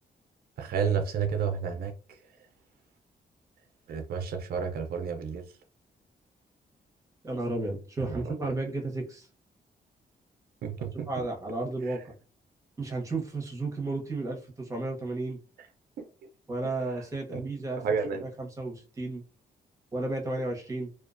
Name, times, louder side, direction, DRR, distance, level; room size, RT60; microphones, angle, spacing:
voice 1, 0.6-1.9 3.9-5.4 8.1-8.2 10.6-11.1 11.9-12.0 16.0-16.1 17.3-17.4 17.8-18.2, right 6 dB, 70° right, 0.4 m, -30 dB
voice 2, 7.2-9.3 11.1-12.0 12.8-15.4 16.5-17.8 18.2-19.2 19.9-20.9, right 2 dB, 20° right, 0.8 m, -33 dB
2.3 x 2.2 x 2.4 m
cardioid pair, 135°, 17 cm